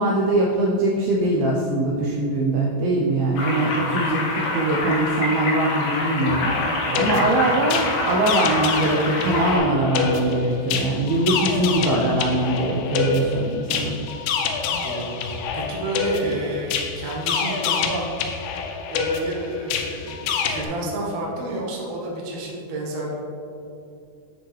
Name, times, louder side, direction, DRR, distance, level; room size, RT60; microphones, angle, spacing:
voice 1, 0.0-14.0 16.2-16.3, right 2 dB, 80° right, -2 dB, 2.1 m, -22 dB
sound 1, 3.4-9.6, left 2 dB, 70° left, 2.2 m, -26 dB
sound 2, 6.3-20.7, left 6 dB, 90° left, 2.7 m, -27 dB
voice 2, 6.9-7.3 14.7-15.2 15.5-18.1 18.9-23.1, right 2 dB, 65° right, -3 dB, 1.9 m, -30 dB
8.1 x 6.3 x 3.2 m, 2.6 s
omnidirectional pair, 4.7 m